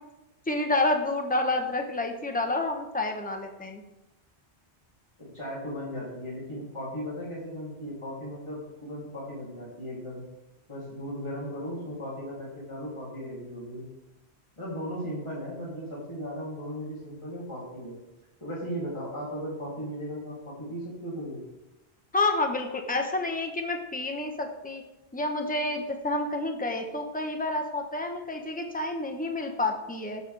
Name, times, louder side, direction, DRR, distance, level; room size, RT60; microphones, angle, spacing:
voice 1, 0.5-3.8 22.1-24.8 25.1-30.2, left 2 dB, 10° left, 4 dB, 1.1 m, -29 dB
voice 2, 5.2-10.2 10.7-13.9 14.6-18.0 18.4-21.4, equal, 25° left, -7 dB, 3.2 m, -37 dB
16.5 x 7.0 x 3.5 m, 0.98 s
omnidirectional pair, 1.1 m